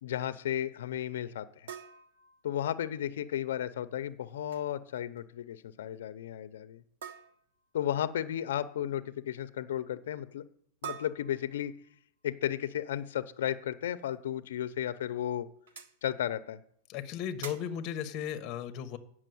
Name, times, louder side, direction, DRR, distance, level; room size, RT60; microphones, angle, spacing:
voice 1, 0.0-1.7 2.4-6.8 7.7-10.4 10.8-11.7 12.2-15.5 16.0-16.6, left 11 dB, 80° left, 13 dB, 0.6 m, -34 dB
sound 1, 1.7-3.0 4.3-4.7 5.0-5.2 5.5-5.6 7.0-7.7 10.8-12.0 14.0-14.1 14.7-14.8 15.7-16.0 17.4-17.9, right 7 dB, 85° right, 1.2 m, -46 dB
voice 2, 16.9-19.0, left 9 dB, 30° left, 9 dB, 0.9 m, -36 dB
9.2 x 6.1 x 7.7 m, 0.70 s
supercardioid pair, 165°, 0 cm